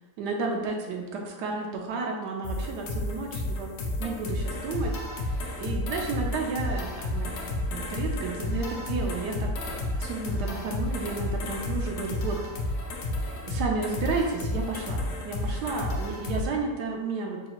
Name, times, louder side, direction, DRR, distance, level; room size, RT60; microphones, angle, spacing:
voice 1, 0.2-4.9 5.6-12.4 13.4-17.4, right 4 dB, 80° right, 1 dB, 1.2 m, -32 dB
sound 1, 2.4-16.4, left 1 dB, 60° left, 0.7 m, -31 dB
5.3 x 2.4 x 3.0 m, 1.2 s
omnidirectional pair, 1.7 m